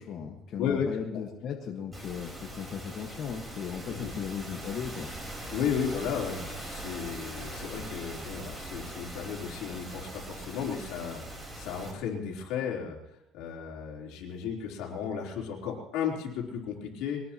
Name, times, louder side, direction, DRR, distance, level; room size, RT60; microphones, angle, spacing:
voice 1, 0.0-5.1, left 7 dB, 50° left, 1 dB, 1.5 m, -37 dB
voice 2, 0.6-0.9 1.1-1.2 3.9-4.1 5.5-17.2, left 7 dB, 85° left, -1 dB, 3.7 m, -34 dB
sound 1, 1.9-11.9, right 1 dB, 10° right, 4.3 m, -41 dB
23.0 x 18.5 x 3.0 m, 0.92 s
cardioid pair, 135°, 0 cm